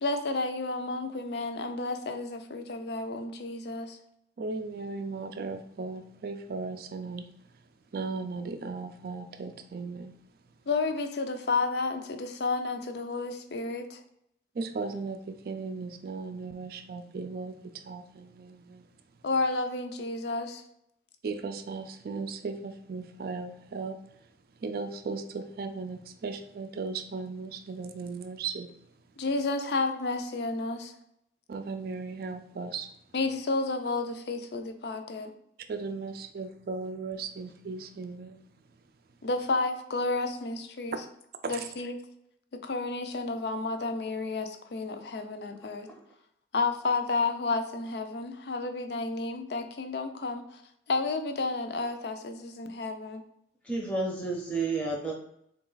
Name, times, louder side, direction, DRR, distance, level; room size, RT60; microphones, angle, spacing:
voice 1, 0.0-4.0 10.7-14.0 19.2-20.6 29.2-30.9 33.1-35.3 39.2-41.0 41.5-42.0 42.6-45.9 46.5-50.6 50.9-53.2, left 3 dB, 60° left, 0.5 m, -31 dB
voice 2, 4.4-7.3 7.9-10.1 14.5-18.9 21.2-24.0 24.6-28.7 31.5-32.9 35.7-38.4 41.4-41.7, right 4 dB, 50° right, 0.3 m, -37 dB
voice 3, 53.6-55.1, right 3 dB, 5° left, 0.6 m, -30 dB
3.9 x 2.3 x 3.9 m
head